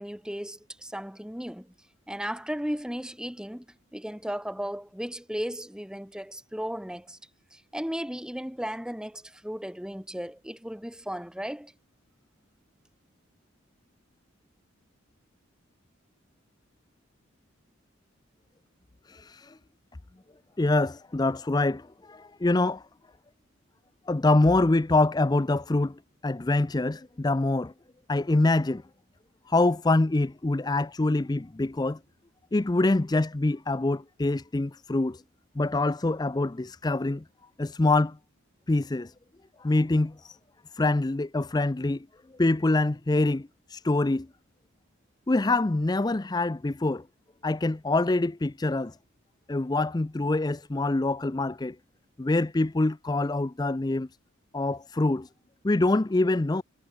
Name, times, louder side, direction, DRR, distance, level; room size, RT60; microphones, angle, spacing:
voice 1, 0.0-1.7 2.1-3.6 3.9-7.2 7.5-11.7, equal, 5° right, 1.3 m, -35 dB
voice 2, 19.1-19.6 20.6-22.8 24.1-27.7 28.1-28.8 29.5-32.0 32.5-35.2 35.6-37.2 37.6-38.2 38.7-39.1 39.6-40.4 40.7-42.1 42.4-44.3 45.3-47.0 47.4-49.0 49.5-51.8 52.2-54.1 54.5-55.3 55.6-56.6, left 2 dB, 20° left, 0.4 m, -25 dB
head